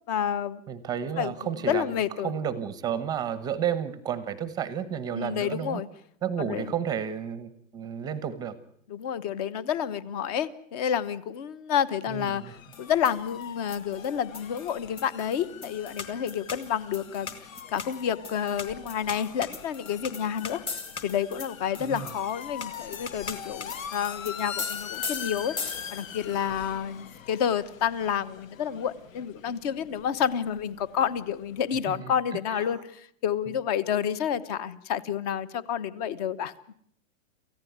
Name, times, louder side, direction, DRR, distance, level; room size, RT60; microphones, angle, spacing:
voice 1, 0.1-0.6 1.2-2.3 5.1-5.9 6.4-6.7 8.9-20.6 21.0-36.5, left 8 dB, 30° left, 17 dB, 1.0 m, -29 dB
voice 2, 0.7-2.0 2.2-5.8 6.2-8.5 12.1-12.5 21.8-22.1 31.9-32.1 32.5-32.8, right 8 dB, 10° right, 14 dB, 0.9 m, -32 dB
sound 1, 12.3-31.8, left 9 dB, 75° left, 1.6 m, -43 dB
sound 2, 12.7-26.2, left 4 dB, 15° left, 1.4 m, -40 dB
28.0 x 15.0 x 9.4 m, 0.69 s
hypercardioid pair, 165°, 40 cm